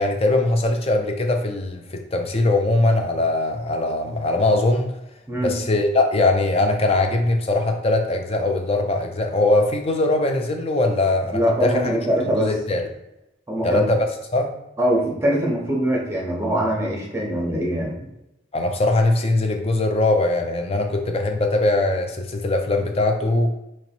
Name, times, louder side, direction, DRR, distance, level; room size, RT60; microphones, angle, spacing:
voice 1, 0.0-4.9 5.4-12.0 12.4-12.9 13.6-14.5 18.5-23.5, left 2 dB, 30° left, 4 dB, 0.5 m, -21 dB
voice 2, 11.3-12.5 13.5-13.9 14.8-18.0, equal, 15° right, -2 dB, 0.9 m, -22 dB
3.0 x 3.0 x 4.3 m, 0.89 s
head